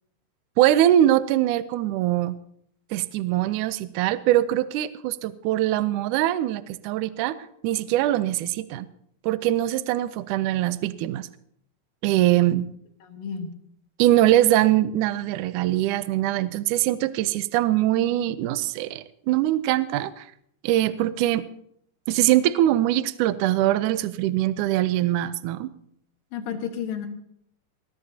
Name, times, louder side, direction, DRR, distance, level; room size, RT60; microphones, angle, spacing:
voice 1, 0.6-2.4 2.9-7.4 7.6-8.9 9.2-11.3 12.0-12.7 14.0-20.3 20.6-21.4 22.1-25.7, right 13 dB, 75° right, 14 dB, 2.0 m, -22 dB
voice 2, 13.0-13.5 26.3-27.1, left 7 dB, 75° left, 5 dB, 3.2 m, -32 dB
20.5 x 20.5 x 2.8 m, 0.71 s
omnidirectional pair, 4.0 m